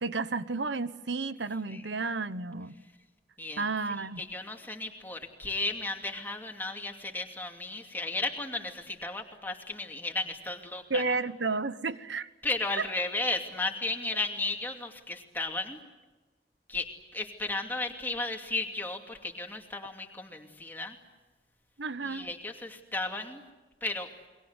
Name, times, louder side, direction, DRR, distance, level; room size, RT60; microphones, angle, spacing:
voice 1, 0.0-2.8 3.6-4.2 10.9-12.3 21.8-22.3, right 3 dB, 85° right, 14 dB, 1.2 m, -32 dB
voice 2, 4.0-11.0 12.4-15.8 16.7-21.0 22.0-23.4 23.8-24.1, left 2 dB, 10° left, 3 dB, 2.6 m, -34 dB
29.5 x 22.5 x 8.2 m, 1.2 s
head